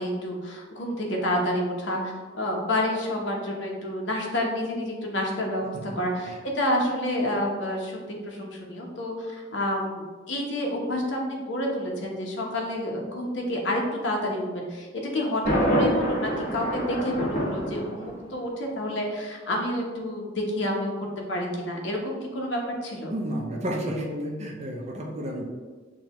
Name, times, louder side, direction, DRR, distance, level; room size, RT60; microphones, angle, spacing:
voice 1, 0.0-14.9 15.1-23.1, left 1 dB, 70° left, -1 dB, 0.9 m, -29 dB
Thunder, 15.4-18.4, right 1 dB, 45° left, 1.4 m, -26 dB
voice 2, 23.1-25.4, equal, 35° right, -1 dB, 0.6 m, -31 dB
6.1 x 2.3 x 2.9 m, 1.4 s
head